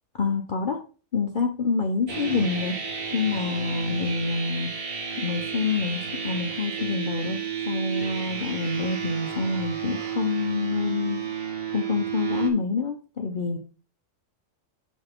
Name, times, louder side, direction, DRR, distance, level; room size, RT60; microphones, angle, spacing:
voice 1, 0.2-0.8 1.1-2.8 3.1-4.7 5.2-11.2 11.7-13.6, left 4 dB, 45° left, 0.8 m, -27 dB
sound 1, 2.1-12.5, right 6 dB, 45° right, 1.5 m, -32 dB
7.4 x 5.7 x 3.5 m
omnidirectional pair, 1.4 m